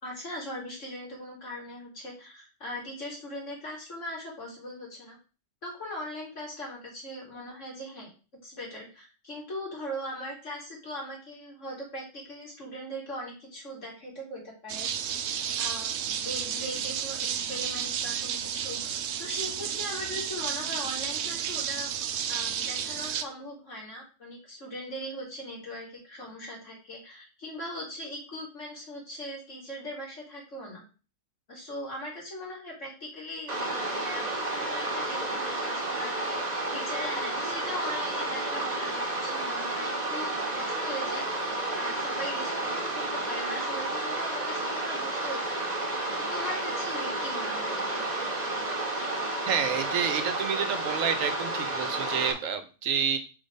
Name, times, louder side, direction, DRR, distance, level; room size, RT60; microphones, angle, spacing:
voice 1, 0.0-5.2 5.6-8.1 8.4-14.9 15.6-21.9 22.3-30.8 31.5-36.4 36.7-41.2 41.7-45.8 46.3-48.3, equal, 70° left, -3 dB, 3.2 m, -40 dB
sound 1, 14.7-23.2, right 9 dB, 65° right, 0.8 m, -32 dB
sound 2, 33.5-52.3, right 2 dB, 35° right, 1.4 m, -31 dB
voice 2, 49.5-53.2, right 7 dB, 85° right, 9 dB, 1.2 m, -29 dB
5.4 x 3.8 x 5.2 m, 0.34 s
omnidirectional pair, 1.3 m